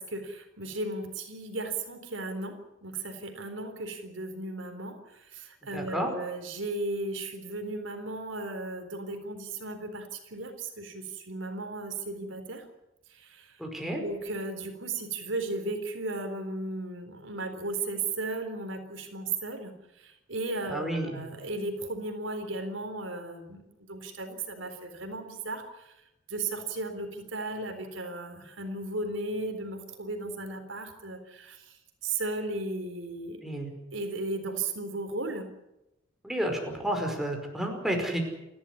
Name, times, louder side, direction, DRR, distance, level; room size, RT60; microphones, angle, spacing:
voice 1, 0.0-12.7 13.1-13.6 14.0-26.0 26.3-33.5 33.9-35.5, right 2 dB, 90° right, 6 dB, 3.9 m, -35 dB
voice 2, 5.7-6.1 13.6-14.0 20.7-21.2 33.4-33.7 36.2-38.2, right 1 dB, ahead, 2 dB, 5.2 m, -31 dB
28.5 x 13.0 x 9.8 m, 0.92 s
head